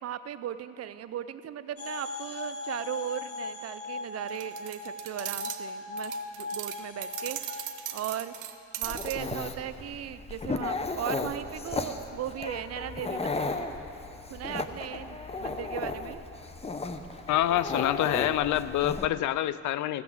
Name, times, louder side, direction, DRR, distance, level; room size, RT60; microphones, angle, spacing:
voice 1, 0.0-8.3 8.8-13.6 14.3-16.2, right 11 dB, 55° right, 13 dB, 0.5 m, -37 dB
sound 1, 1.8-7.9, left 3 dB, 50° left, 1.2 m, -38 dB
sound 2, 4.3-5.6 6.0-9.2, right 12 dB, 90° right, 0.7 m, -38 dB
Dog, 8.8-19.1, left 3 dB, 20° left, 0.7 m, -35 dB
voice 2, 17.3-20.0, left 13 dB, 75° left, 16 dB, 0.4 m, -27 dB
15.0 x 6.0 x 7.7 m, 2.7 s
cardioid pair, 90°, 30 cm